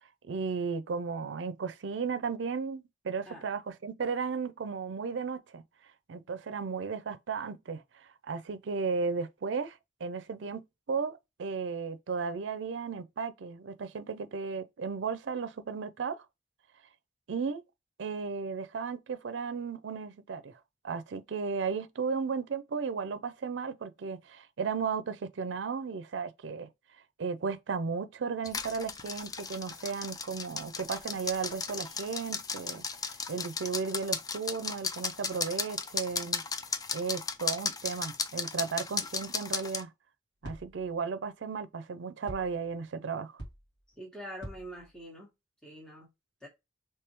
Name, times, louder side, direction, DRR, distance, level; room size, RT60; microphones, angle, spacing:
voice 1, 0.2-5.6 6.1-16.2 17.3-17.6 18.0-20.6 20.8-26.7 27.2-32.8 33.3-36.4 36.9-39.9 40.4-43.4, right 5 dB, 80° right, 0.5 m, -35 dB
sound 1, 28.4-39.8, left 5 dB, 20° left, 0.3 m, -36 dB
sound 2, 40.4-41.0 42.3-42.8 43.4-43.9 44.4-45.0, right 1 dB, 70° left, 1.8 m, -45 dB
voice 2, 44.0-45.3 45.6-46.1 46.4-46.5, equal, 5° left, 1.0 m, -44 dB
3.4 x 3.1 x 3.0 m
head